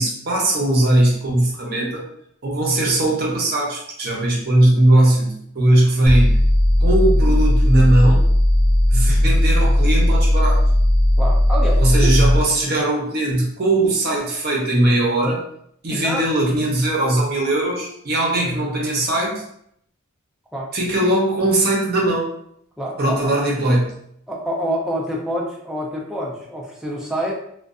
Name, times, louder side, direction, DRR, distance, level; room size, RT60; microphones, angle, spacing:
voice 1, 0.0-2.0 2.4-6.4 6.8-8.3 8.9-10.6 11.8-15.4 15.8-19.4 20.7-22.3 23.0-24.0, right 1 dB, 50° right, -2 dB, 0.7 m, -19 dB
sound 1, 6.1-12.5, left 1 dB, 75° left, 0.9 m, -16 dB
voice 2, 11.2-12.1 15.9-16.3 20.5-20.7 22.8-23.4 24.3-27.4, equal, ahead, -3 dB, 0.4 m, -27 dB
2.5 x 2.2 x 2.4 m, 0.70 s
head